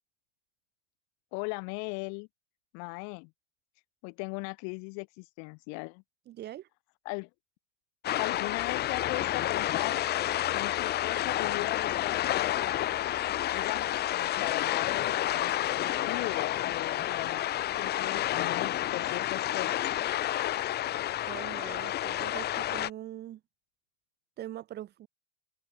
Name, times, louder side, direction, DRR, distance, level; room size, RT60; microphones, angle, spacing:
voice 1, 1.3-2.3 2.7-3.3 4.0-6.0 7.0-7.3 8.2-10.0 10.5-12.9 13.5-15.5 15.8-17.5 17.8-19.7, left 38 dB, 45° left, 6.8 m, -38 dB
voice 2, 6.3-6.7 21.2-23.4 24.4-25.1, right 13 dB, 25° right, 4.4 m, -42 dB
sound 1, 8.0-22.9, left 13 dB, 25° left, 3.0 m, -30 dB
supercardioid pair, 165°, 39 cm